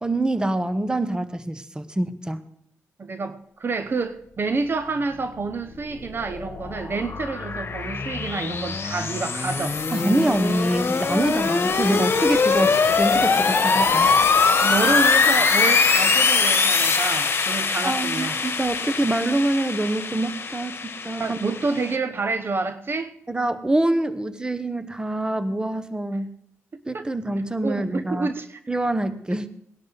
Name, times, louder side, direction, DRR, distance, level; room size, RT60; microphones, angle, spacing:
voice 1, 0.0-2.4 9.9-14.1 17.8-21.4 23.3-26.3 26.8-28.3 28.7-29.5, right 1 dB, 15° right, 1.1 m, -25 dB
voice 2, 3.0-9.8 14.6-18.4 21.2-23.1 26.7-27.1 27.6-28.6, right 3 dB, 45° right, 0.9 m, -28 dB
sound 1, 5.9-22.0, left 4 dB, 50° left, 1.4 m, -22 dB
19.5 x 11.5 x 4.1 m
cardioid pair, 75°, 5 cm